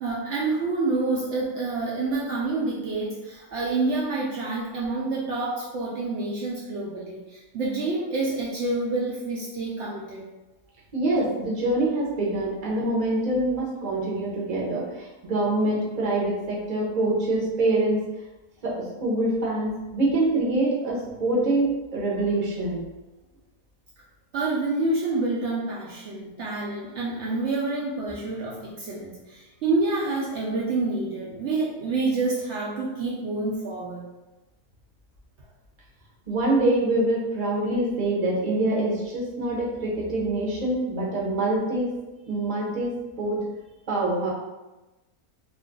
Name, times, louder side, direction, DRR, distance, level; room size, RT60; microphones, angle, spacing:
voice 1, 0.0-10.2 24.3-34.1, right 3 dB, 80° right, -4 dB, 0.6 m, -28 dB
voice 2, 10.9-18.0 18.6-22.9 36.3-41.9 42.3-42.9 43.2-43.4 43.9-44.3, right 2 dB, 40° right, -5 dB, 0.7 m, -25 dB
2.6 x 2.5 x 3.6 m, 1.1 s
omnidirectional pair, 1.7 m